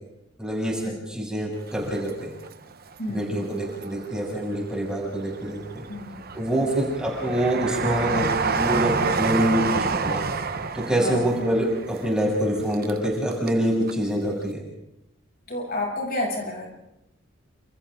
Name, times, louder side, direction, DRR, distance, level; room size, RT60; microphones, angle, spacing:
voice 1, 0.4-2.3 3.1-5.8 6.3-10.2 10.7-14.6, right 1 dB, 5° right, -2 dB, 7.0 m, -25 dB
Train, 1.7-2.9 3.4-4.3 4.9-13.6 13.9-14.0, right 4 dB, 50° right, 1.2 m, -29 dB
voice 2, 3.0-3.5 5.9-6.2 11.0-11.3 15.5-16.7, left 1 dB, 50° left, -1 dB, 7.6 m, -30 dB
29.5 x 28.5 x 3.9 m, 0.89 s
head